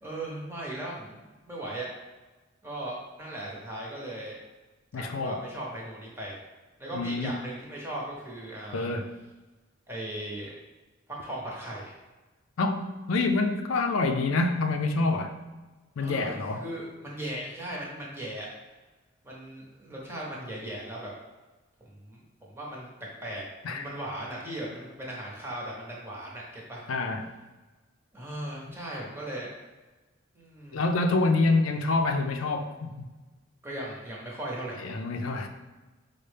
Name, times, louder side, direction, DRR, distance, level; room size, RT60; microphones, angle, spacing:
voice 1, 0.0-1.9 2.6-4.4 5.0-6.4 6.8-8.9 9.9-10.5 11.1-12.0 16.0-18.5 19.2-21.1 21.8-26.8 28.1-29.5 30.3-30.8 33.6-34.8, right 1 dB, 10° right, -5 dB, 0.8 m, -38 dB
voice 2, 4.9-5.4 6.9-7.3 8.7-9.1 12.6-15.3 16.0-16.6 23.6-23.9 26.9-27.3 30.7-32.9 34.8-35.5, left 3 dB, 85° left, 5 dB, 0.4 m, -26 dB
5.3 x 2.1 x 3.3 m, 1.2 s
head